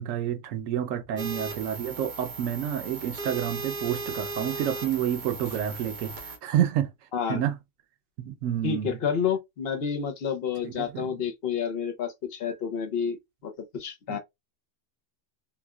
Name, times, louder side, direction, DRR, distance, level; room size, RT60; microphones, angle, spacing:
voice 1, 0.0-6.9 7.3-7.6 8.2-9.0 10.6-11.1 14.1-14.2, right 10 dB, 85° right, 1.0 m, -29 dB
sound 1, 1.2-6.4, right 3 dB, 45° right, 0.8 m, -37 dB
voice 2, 7.1-7.4 8.6-14.2, left 7 dB, 55° left, 0.8 m, -30 dB
2.9 x 2.7 x 2.2 m
omnidirectional pair, 1.3 m